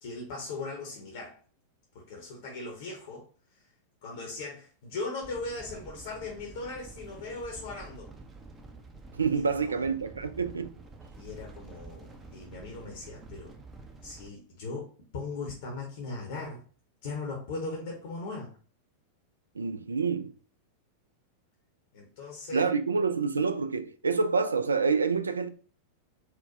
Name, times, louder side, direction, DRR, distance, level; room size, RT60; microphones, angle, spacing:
voice 1, 0.0-1.4 1.9-3.2 4.0-8.1 9.4-9.8 11.2-13.5 14.0-16.6 17.0-18.5 21.9-22.7, left 3 dB, 55° left, 0.8 m, -39 dB
sound 1, 5.2-14.3, right 3 dB, 20° right, 0.5 m, -48 dB
voice 2, 9.1-10.7 19.6-20.3 22.5-25.5, right 5 dB, 75° right, 0.3 m, -27 dB
4.3 x 2.1 x 2.5 m
figure-of-eight pair, 90°, 0 cm